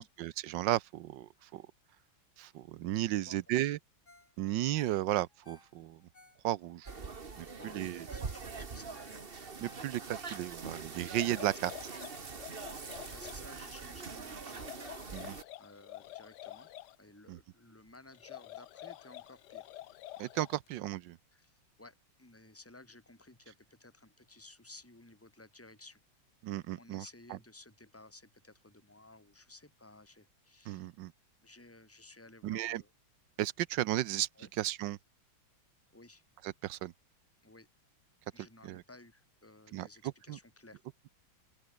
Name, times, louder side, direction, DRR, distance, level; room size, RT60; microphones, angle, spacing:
voice 1, 0.0-1.7 2.4-3.8 4.4-6.0 6.4-6.9 7.4-8.0 9.6-11.7 15.1-15.4 17.3-17.4 20.2-21.2 26.4-27.0 27.3-27.4 30.7-31.1 32.4-32.8 33.4-34.3 34.6-35.0 36.4-36.9 38.6-38.8 39.7-40.4, right 14 dB, 70° right, 1.3 m, -34 dB
voice 2, 3.1-3.8 7.5-9.3 11.5-11.6 12.7-14.8 15.6-16.7 17.0-19.7 21.3-26.0 26.8-30.9 31.4-32.9 34.3-34.5 35.9-36.2 37.4-37.7 38.3-40.8, left 2 dB, 5° left, 3.3 m, -56 dB
Ringtone, 4.1-4.4 4.6-7.5 7.9-8.0 8.2-8.5 8.8-11.7 12.1-12.2, left 2 dB, 50° left, 7.7 m, -61 dB
sound 1, 6.9-15.4, right 4 dB, 30° right, 1.6 m, -44 dB
sound 2, 11.0-13.5 14.5-17.0 18.1-20.7, left 14 dB, 70° left, 1.1 m, -48 dB
open air
omnidirectional pair, 2.2 m